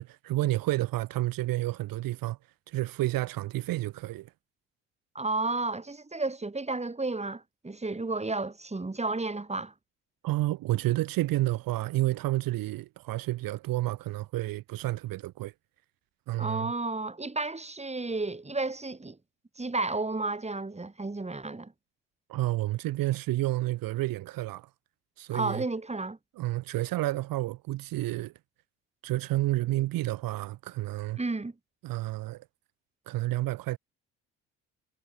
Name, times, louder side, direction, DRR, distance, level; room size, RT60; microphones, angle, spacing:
voice 1, 0.0-2.4 2.7-4.3 10.2-15.5 16.3-16.7 22.3-24.7 25.2-25.6 26.4-28.3 29.0-31.2 31.8-32.5 33.1-33.8, right 17 dB, 65° right, 3.7 m, -30 dB
voice 2, 5.1-9.7 16.4-19.2 19.6-21.7 25.3-26.2 31.2-31.5, right 3 dB, 20° right, 7.5 m, -32 dB
hypercardioid pair, 60°, 36 cm